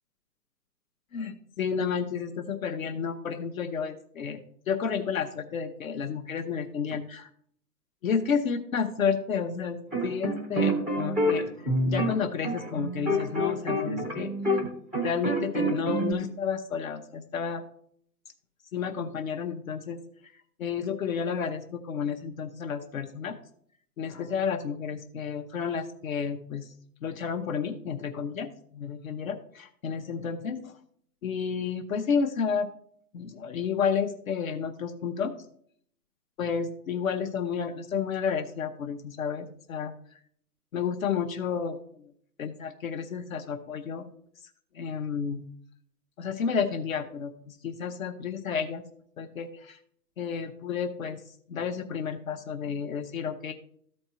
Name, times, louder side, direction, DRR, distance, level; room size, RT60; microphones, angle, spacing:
voice 1, 1.1-4.4 4.7-7.3 8.0-11.4 11.9-14.6 15.0-17.6 18.7-20.0 20.6-23.4 24.0-26.6 27.0-28.5 28.7-30.7 31.2-32.7 33.1-35.3 36.4-39.9 40.7-42.1 42.4-44.1 44.7-45.4 46.2-48.8 49.2-49.8 50.2-51.2 51.5-53.5, left 6 dB, 55° left, 6 dB, 0.8 m, -31 dB
sound 1, 9.9-14.7 14.9-16.1, equal, 5° left, 0.5 m, -27 dB
13.0 x 4.4 x 4.3 m, 0.64 s
figure-of-eight pair, 125°, 50 cm